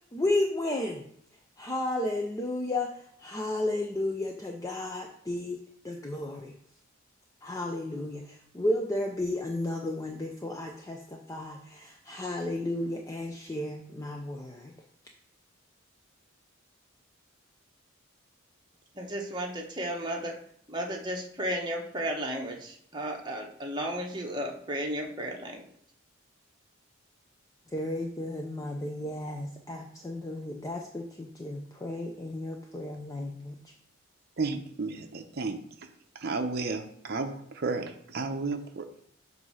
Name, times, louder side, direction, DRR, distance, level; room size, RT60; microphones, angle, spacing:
voice 1, 0.1-1.0 1.6-2.9 3.2-5.6 5.8-6.5 7.4-14.7 27.7-33.6, left 1 dB, 15° left, 1 dB, 0.5 m, -33 dB
voice 2, 19.0-20.4 20.7-25.6, right 1 dB, 20° right, 1 dB, 1.0 m, -34 dB
voice 3, 34.4-35.6 36.2-39.0, right 3 dB, 50° right, 5 dB, 0.6 m, -33 dB
7.8 x 2.7 x 5.6 m, 0.68 s
head